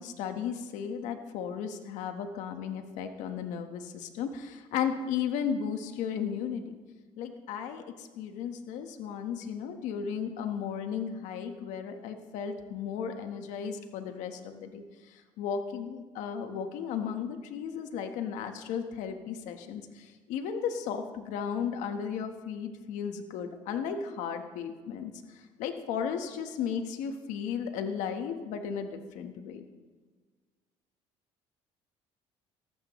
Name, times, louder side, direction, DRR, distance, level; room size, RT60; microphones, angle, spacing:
voice 1, 0.0-6.8 7.2-29.7, left 7 dB, 80° left, 6 dB, 1.3 m, -35 dB
18.5 x 14.5 x 3.2 m, 1.4 s
cardioid pair, 105°, 13 cm